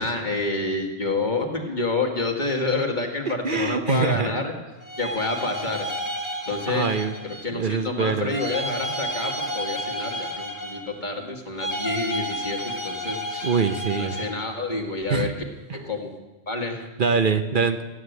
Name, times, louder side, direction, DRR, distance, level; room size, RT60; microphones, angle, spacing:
voice 1, 0.0-4.5 5.0-5.9 6.5-6.9 7.2-13.5 14.0-15.3 15.7-16.1 16.5-16.8, left 3 dB, 45° left, 2 dB, 2.0 m, -28 dB
voice 2, 3.3-4.3 6.7-7.1 7.5-8.3 13.4-14.2 15.1-15.3 15.7-15.8 17.0-17.8, right 5 dB, 55° right, 8 dB, 0.9 m, -24 dB
sound 1, 4.8-7.6 8.3-11.1 11.6-14.5, equal, 15° left, 1.9 m, -31 dB
14.5 x 9.4 x 8.0 m, 1.1 s
omnidirectional pair, 1.1 m